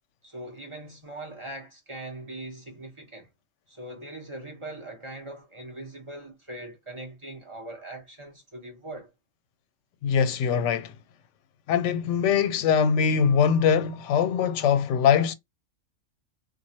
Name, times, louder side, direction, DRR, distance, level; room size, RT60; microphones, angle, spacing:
voice 1, 0.2-3.3 3.7-9.1, right 1 dB, 30° right, 0.7 m, -41 dB
voice 2, 10.0-10.9 11.7-15.3, left 7 dB, 70° left, 0.8 m, -22 dB
3.0 x 2.3 x 2.6 m
omnidirectional pair, 1.3 m